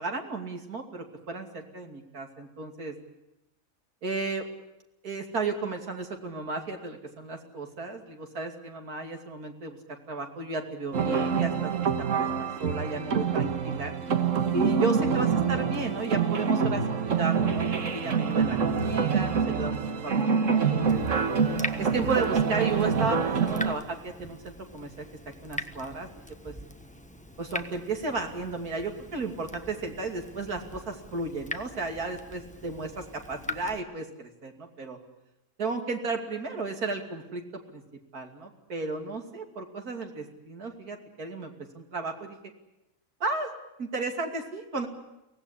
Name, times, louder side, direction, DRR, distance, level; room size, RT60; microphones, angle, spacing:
voice 1, 0.0-2.9 4.0-4.4 5.0-9.8 10.1-11.9 12.1-12.3 12.6-13.9 14.5-21.0 21.8-24.9 25.4-26.1 26.4-26.6 27.4-35.0 35.6-37.4 37.7-37.8 38.1-42.3 43.2-43.5 43.8-44.9, right 3 dB, 85° right, 3 dB, 3.2 m, -34 dB
sound 1, 10.9-23.7, right 6 dB, 60° right, 1.7 m, -26 dB
Water tap faucet / Drip, 20.9-33.8, left 1 dB, 5° left, 1.1 m, -42 dB
24.0 x 18.0 x 9.9 m, 0.91 s
omnidirectional pair, 1.5 m